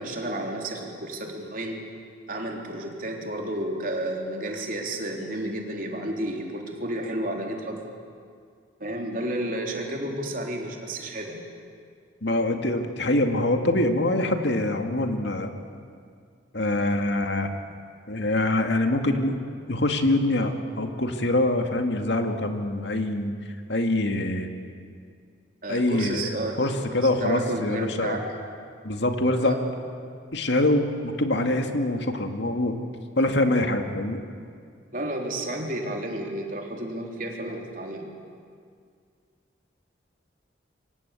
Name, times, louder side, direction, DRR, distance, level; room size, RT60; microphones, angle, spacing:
voice 1, 0.0-1.8 2.3-7.9 8.8-11.4 25.6-26.6 26.9-28.2 29.4-29.6 34.9-38.1, right 1 dB, 45° right, 1 dB, 3.8 m, -31 dB
voice 2, 12.2-15.5 16.5-17.5 18.1-19.4 19.7-23.3 23.7-24.5 25.7-26.2 26.6-28.2 28.8-29.6 30.3-32.8 33.2-34.2, left 1 dB, 65° left, 5 dB, 2.2 m, -24 dB
27.5 x 24.5 x 8.5 m, 2.2 s
head